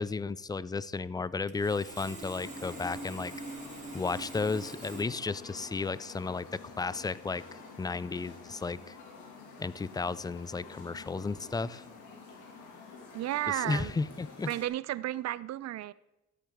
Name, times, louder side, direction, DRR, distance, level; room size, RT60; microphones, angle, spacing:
voice 1, 0.0-3.3 3.9-7.4 7.8-9.0 9.6-11.8 13.5-14.5, left 4 dB, 15° left, 19 dB, 0.3 m, -33 dB
Sawing, 1.5-5.0, right 3 dB, 25° right, 2.7 m, -43 dB
sound 1, 2.3-14.7, left 4 dB, 80° left, 2.3 m, -49 dB
voice 2, 13.1-13.9 14.5-15.9, right 14 dB, 60° right, 17 dB, 0.5 m, -33 dB
13.0 x 8.7 x 3.6 m, 0.98 s
cardioid pair, 90°, 30 cm